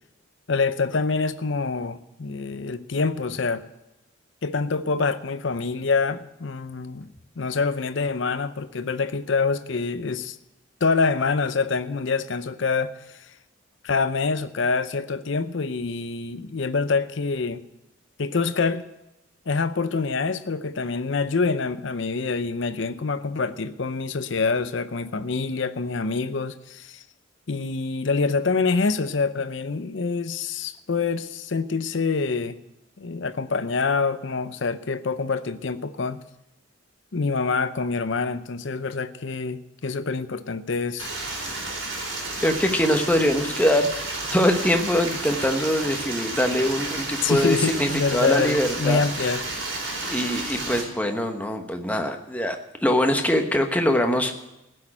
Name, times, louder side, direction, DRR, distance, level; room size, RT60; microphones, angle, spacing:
voice 1, 0.5-3.6 4.4-10.4 10.8-12.9 13.8-17.6 18.2-18.8 19.5-27.0 27.5-32.6 33.0-36.2 37.1-41.1 47.2-49.4, left 4 dB, 65° left, 0.6 m, -26 dB
Stream, 41.0-50.8, right 2 dB, 65° right, 4.4 m, -31 dB
voice 2, 42.4-49.0 50.0-54.3, left 1 dB, 5° left, 1.1 m, -23 dB
16.0 x 6.5 x 9.9 m
head